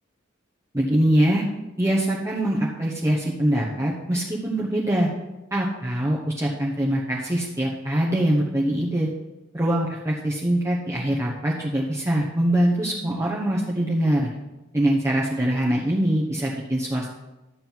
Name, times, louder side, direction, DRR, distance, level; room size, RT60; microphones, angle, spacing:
voice 1, 0.7-1.4 1.8-5.1 5.5-9.1 9.5-14.3 14.7-17.1, right 1 dB, 15° right, -4 dB, 1.1 m, -23 dB
12.5 x 7.6 x 4.6 m, 1.0 s
head